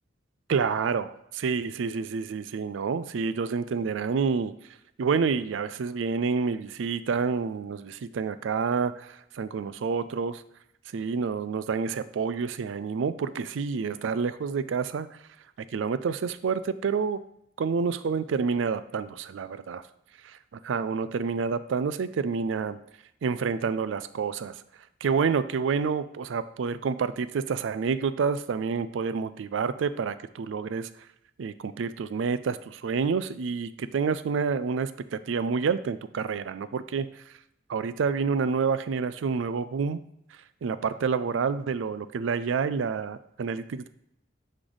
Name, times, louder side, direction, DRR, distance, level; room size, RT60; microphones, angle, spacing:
voice 1, 0.5-4.5 5.0-10.4 10.9-15.2 15.7-17.2 17.6-19.8 20.6-22.8 23.2-24.6 25.0-30.9 31.4-37.1 37.7-40.0 40.6-43.9, right 5 dB, 85° right, 14 dB, 0.4 m, -28 dB
9.7 x 3.3 x 3.9 m, 0.79 s
head